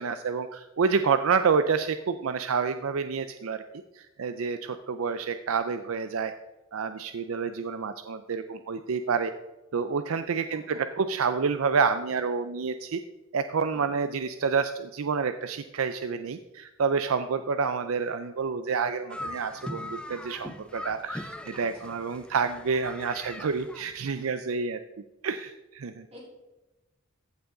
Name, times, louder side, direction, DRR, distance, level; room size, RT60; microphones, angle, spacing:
voice 1, 0.0-3.6 3.9-6.3 6.7-9.3 9.7-13.0 13.3-24.8 25.2-26.1, right 5 dB, 80° right, 10 dB, 0.5 m, -28 dB
voice 2, 10.5-10.8 13.7-14.0 21.5-21.9 26.1-26.2, equal, 30° right, -4 dB, 4.2 m, -49 dB
sound 1, 19.1-24.3, left 1 dB, 5° left, 0.5 m, -40 dB
15.0 x 7.1 x 3.8 m, 1.1 s
head